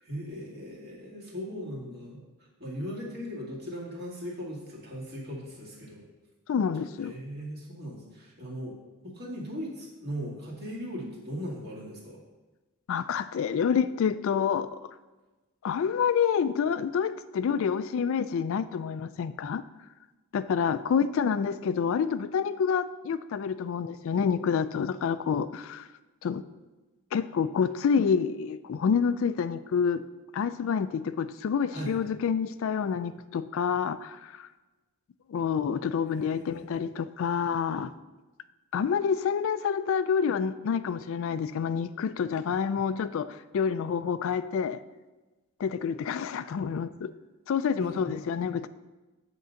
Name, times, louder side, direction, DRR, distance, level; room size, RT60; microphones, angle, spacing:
voice 1, 0.0-2.2 2.6-6.1 7.0-8.8 9.0-12.2 31.7-32.0 36.1-36.6 47.8-48.1, equal, 45° right, -4 dB, 2.0 m, -38 dB
voice 2, 6.5-7.1 12.9-14.8 15.6-19.6 20.3-25.9 26.2-26.4 27.1-30.0 30.3-34.5 35.3-37.9 38.7-44.8 45.6-47.1 47.5-48.7, left 6 dB, 60° left, 13 dB, 0.3 m, -28 dB
8.0 x 3.8 x 6.3 m, 1.1 s
head